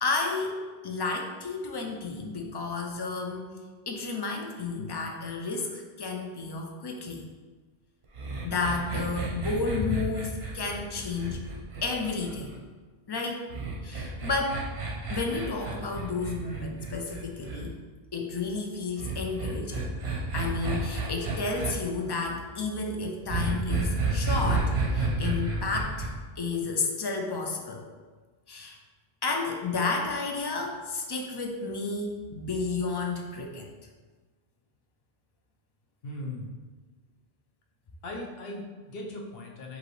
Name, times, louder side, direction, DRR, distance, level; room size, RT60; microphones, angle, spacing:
voice 1, 0.0-3.5 3.9-7.2 8.4-11.4 11.8-12.5 13.1-13.5 13.8-14.6 15.1-17.8 18.1-19.9 20.3-26.1 26.4-27.8 28.5-28.8 29.2-33.7, left 3 dB, 40° left, 2 dB, 0.3 m, -31 dB
sound 1, 8.1-12.6 13.5-17.6 19.0-21.7 23.3-26.1, right 3 dB, 85° right, 1.0 m, -31 dB
voice 2, 36.0-36.5 38.0-39.8, left 1 dB, 70° left, 0 dB, 0.9 m, -38 dB
5.2 x 2.9 x 3.1 m, 1.3 s
omnidirectional pair, 1.0 m